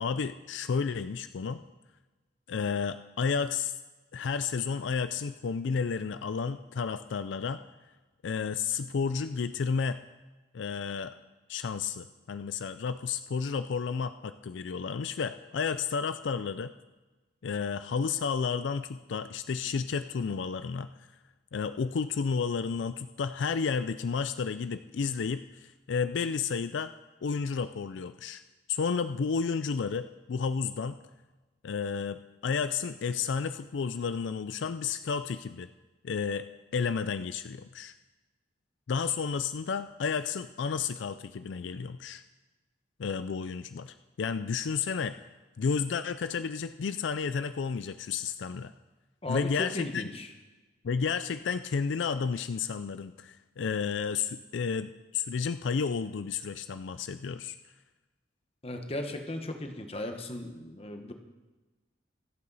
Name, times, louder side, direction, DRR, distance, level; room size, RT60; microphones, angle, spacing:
voice 1, 0.0-1.6 2.5-3.7 4.1-7.6 8.2-10.0 10.5-11.2 11.5-16.7 17.4-20.9 21.5-26.9 27.2-28.4 28.7-31.0 31.6-35.7 36.0-36.5 36.7-37.9 38.9-42.2 43.0-45.2 45.6-48.7 49.3-50.1 50.8-57.6, left 5 dB, 75° left, 11 dB, 0.4 m, -31 dB
voice 2, 49.2-50.3 58.6-61.1, left 1 dB, 30° left, 5 dB, 1.2 m, -36 dB
25.0 x 8.5 x 4.1 m, 1.2 s
head